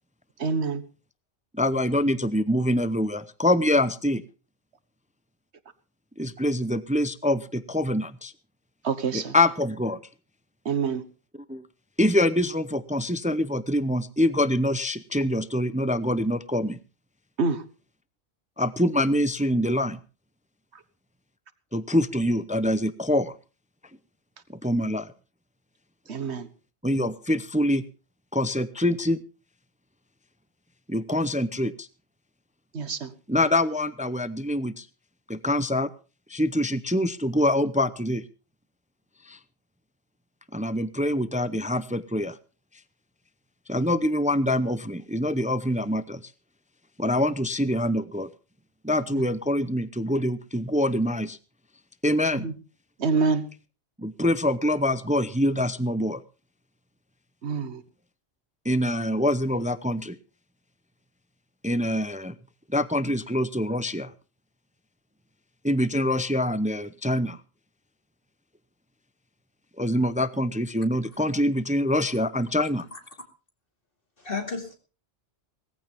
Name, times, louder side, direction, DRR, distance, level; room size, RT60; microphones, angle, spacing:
voice 1, 0.4-0.8 8.8-9.3 10.6-11.0 17.4-17.6 26.1-26.5 32.7-33.1 52.4-52.5 53.0-53.4 57.4-57.8, right 4 dB, 80° right, 12 dB, 1.6 m, -26 dB
voice 2, 1.5-4.2 6.2-8.3 9.1-10.0 11.5-11.6 12.0-16.8 18.6-20.0 21.7-23.4 24.5-25.1 26.8-27.8 28.3-29.2 30.9-31.9 33.3-34.9 35.3-35.9 36.3-38.3 39.2-39.4 40.5-42.4 43.7-46.3 47.0-48.3 48.8-51.4 52.0-52.5 54.0-56.2 58.6-60.2 61.6-62.4 62.7-64.1 65.6-67.4 69.8-72.8, left 1 dB, 10° right, 14 dB, 0.5 m, -25 dB
voice 3, 72.6-73.0 74.2-74.7, left 4 dB, 55° left, 4 dB, 2.6 m, -34 dB
18.0 x 15.0 x 3.5 m, 0.35 s
omnidirectional pair, 1.1 m